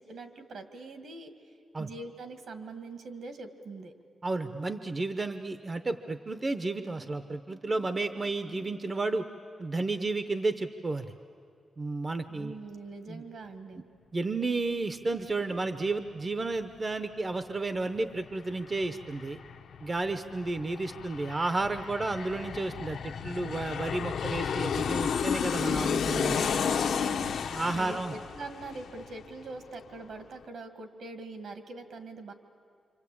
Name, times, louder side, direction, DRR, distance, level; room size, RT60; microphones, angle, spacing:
voice 1, 0.0-1.5 1.8-3.9 12.3-13.8 26.1-32.3, right 3 dB, 65° right, 7 dB, 2.0 m, -43 dB
voice 2, 4.2-9.3 9.6-11.1 11.8-12.5 13.1-13.2 13.7-13.8 14.1-19.4 19.8-26.4 27.5-28.1, right 3 dB, 25° right, 9 dB, 0.7 m, -32 dB
Aircraft, 18.0-18.1 18.3-29.6 29.9-30.0, left 7 dB, 75° left, 0.9 m, -32 dB
27.0 x 26.0 x 8.6 m, 2.4 s
wide cardioid pair, 165°, 0 cm